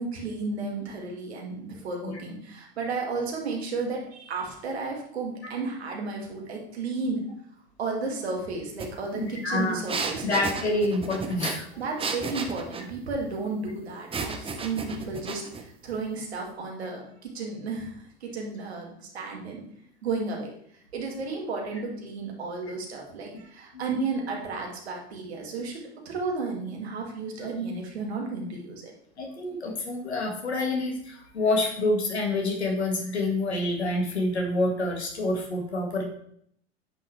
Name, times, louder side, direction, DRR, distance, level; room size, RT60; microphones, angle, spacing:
voice 1, 0.0-7.2 7.8-10.3 11.8-19.7 20.0-20.5 20.9-28.9, right 3 dB, 75° right, 0 dB, 2.4 m, -33 dB
sound 1, 8.8-8.9 9.2-12.9 14.1-15.6, right 4 dB, 15° right, 1.0 m, -33 dB
voice 2, 9.1-9.8 10.2-11.7 23.7-24.1 29.2-36.0, left 2 dB, 85° left, 1 dB, 2.0 m, -27 dB
9.3 x 6.0 x 3.3 m, 0.67 s
figure-of-eight pair, 85°, 32 cm